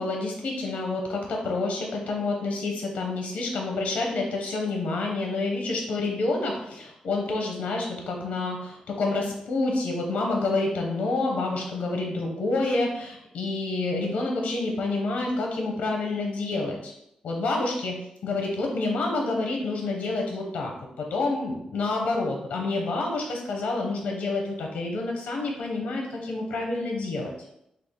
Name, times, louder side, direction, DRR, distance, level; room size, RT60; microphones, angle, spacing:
voice 1, 0.0-16.9 17.2-27.3, left 3 dB, 80° left, 1 dB, 0.7 m, -28 dB
3.2 x 2.4 x 3.6 m, 0.77 s
wide cardioid pair, 170°, 2 cm